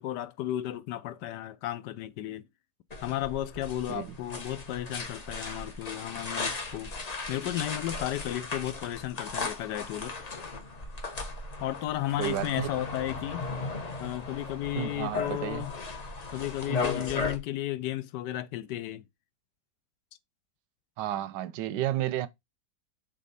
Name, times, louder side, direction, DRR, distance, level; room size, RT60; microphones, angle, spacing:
voice 1, 0.0-2.5 3.0-6.9 7.3-10.2 11.6-13.5 14.0-15.7 16.3-19.1, left 14 dB, 80° left, 1.2 m, -34 dB
sound 1, 2.9-17.4, left 3 dB, 35° left, 0.7 m, -36 dB
voice 2, 12.2-12.7 14.7-15.6 21.0-22.3, right 13 dB, 85° right, 1.2 m, -32 dB
6.3 x 3.8 x 3.9 m
omnidirectional pair, 1.8 m